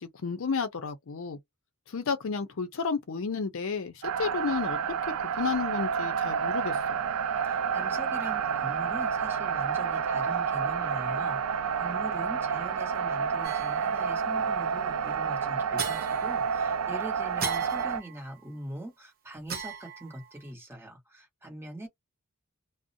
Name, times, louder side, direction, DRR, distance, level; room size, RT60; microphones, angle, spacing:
voice 1, 0.0-1.4 1.9-4.8 5.3-7.0, left 5 dB, 65° left, 0.5 m, -32 dB
sound 1, 4.0-18.0, right 6 dB, 70° right, 0.4 m, -29 dB
voice 2, 7.4-21.9, right 1 dB, 10° right, 1.1 m, -42 dB
sound 2, 13.4-14.2 15.8-16.8 17.4-18.5 19.5-20.5, right 6 dB, 45° right, 0.7 m, -38 dB
2.3 x 2.0 x 2.6 m
head